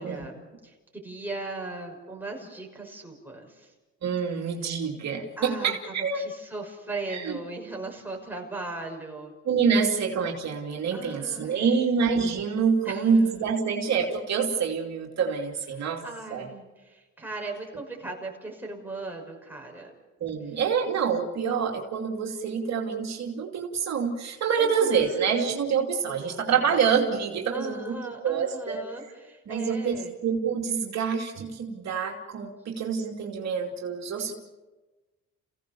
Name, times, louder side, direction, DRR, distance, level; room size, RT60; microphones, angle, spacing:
voice 1, 0.0-3.7 5.4-5.8 6.1-9.3 10.9-11.9 12.8-13.0 15.7-19.9 24.6-25.5 26.1-26.7 27.5-30.1 34.2-34.3, right 2 dB, 5° right, -1 dB, 6.1 m, -38 dB
voice 2, 4.0-6.2 7.1-7.4 9.4-16.0 16.3-16.5 20.2-28.0 28.2-28.8 29.5-29.9 30.2-34.3, right 6 dB, 60° right, 0 dB, 2.8 m, -26 dB
29.5 x 17.0 x 7.0 m, 1.2 s
cardioid pair, 90°, 30 cm